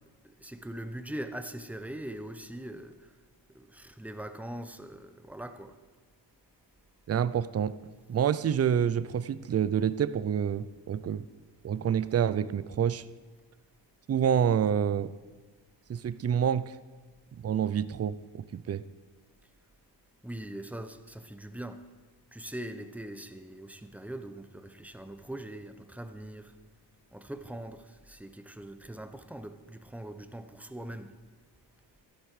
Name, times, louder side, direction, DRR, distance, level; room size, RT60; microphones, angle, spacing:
voice 1, 0.2-3.1 3.5-5.8 20.2-21.9 22.3-26.5 27.1-31.2, right 1 dB, 5° right, 0.9 m, -42 dB
voice 2, 7.1-7.8 8.1-11.2 11.6-13.1 14.1-15.1 15.9-16.8 17.3-18.8, right 8 dB, 35° right, 0.5 m, -28 dB
13.0 x 11.5 x 4.9 m
cardioid pair, 75°, 44 cm